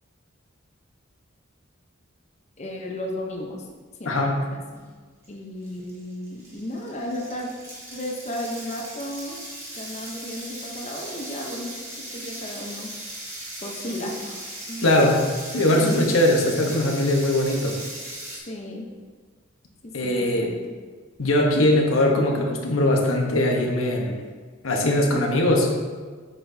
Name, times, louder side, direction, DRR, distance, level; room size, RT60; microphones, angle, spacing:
voice 1, 2.6-3.7 4.0-4.8 5.3-7.5 7.9-9.4 9.7-12.9 13.6-14.4 14.7-14.9 15.8-16.1 18.5-18.9 19.8-20.6, left 1 dB, 35° left, 0 dB, 0.8 m, -34 dB
sound 1, 5.2-5.3 5.6-18.4, right 1 dB, 15° right, 1.8 m, -38 dB
voice 2, 14.8-15.2 15.5-17.8 19.9-20.5 21.2-24.1 24.6-25.7, left 1 dB, 90° left, 1 dB, 1.1 m, -21 dB
8.7 x 6.0 x 2.7 m, 1.5 s
head